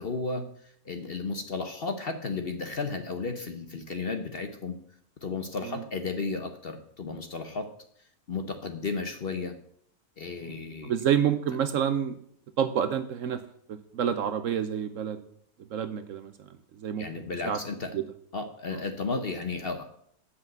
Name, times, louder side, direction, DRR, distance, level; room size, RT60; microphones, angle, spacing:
voice 1, 0.0-4.8 5.2-7.7 8.3-9.5 10.2-10.9 17.0-17.9 18.3-19.8, left 4 dB, 45° left, 7 dB, 0.9 m, -33 dB
voice 2, 10.8-12.2 12.6-13.4 13.7-15.2 15.7-16.5 16.8-17.1 17.4-17.6 17.9-18.0 18.7-18.8, right 8 dB, 65° right, 10 dB, 0.9 m, -28 dB
7.9 x 5.7 x 7.7 m, 0.65 s
omnidirectional pair, 1.7 m